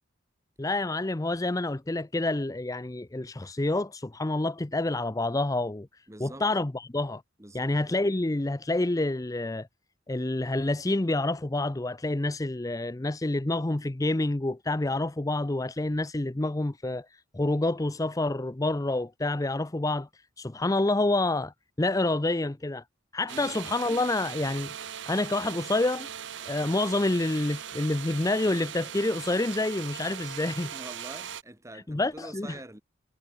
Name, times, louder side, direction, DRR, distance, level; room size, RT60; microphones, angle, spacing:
voice 1, 0.6-5.9 6.2-7.2 7.5-9.7 10.1-20.1 20.4-22.8 23.1-24.7 25.1-26.1 26.5-30.7 31.9-32.6, left 2 dB, 20° left, 0.5 m, -28 dB
voice 2, 6.1-6.5 7.4-8.1 23.3-23.6 30.7-32.8, right 1 dB, 15° right, 1.8 m, -45 dB
sound 1, 23.3-31.4, right 9 dB, 65° right, 0.8 m, -39 dB
head